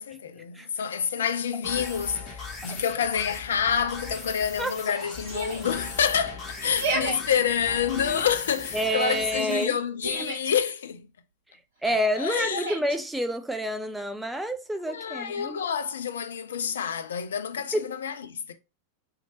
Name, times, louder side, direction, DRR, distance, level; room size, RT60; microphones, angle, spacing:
voice 1, 0.0-11.1 11.9-12.8 14.9-18.5, left 8 dB, 65° left, 0.5 m, -28 dB
sound 1, 1.6-9.6, left 3 dB, 25° left, 1.1 m, -40 dB
Yell, 5.3-5.7 6.6-7.2 7.9-8.4 9.6-10.5 12.4-13.0, right 3 dB, 55° right, 1.2 m, -32 dB
voice 2, 8.7-9.7 11.8-15.6 17.7-17.9, right 1 dB, 5° right, 0.5 m, -28 dB
2.9 x 2.8 x 2.7 m
figure-of-eight pair, 90°, 0 cm